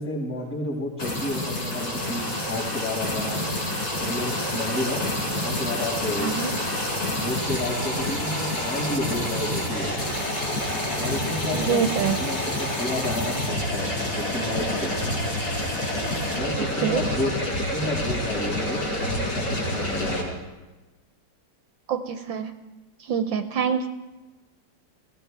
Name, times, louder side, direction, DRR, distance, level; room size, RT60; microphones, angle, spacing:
voice 1, 0.0-3.5 4.0-5.0 5.3-6.3 7.1-9.9 11.0-14.9 16.3-17.3 17.7-20.4, left 1 dB, 30° left, -3 dB, 6.1 m, -31 dB
sound 1, 1.0-20.2, left 1 dB, 55° left, 4.7 m, -28 dB
voice 2, 6.2-6.5 11.5-12.2 16.6-17.0 21.9-22.5 23.0-23.9, right 7 dB, 70° right, 7 dB, 1.4 m, -26 dB
23.0 x 16.0 x 3.5 m, 1.1 s
omnidirectional pair, 2.3 m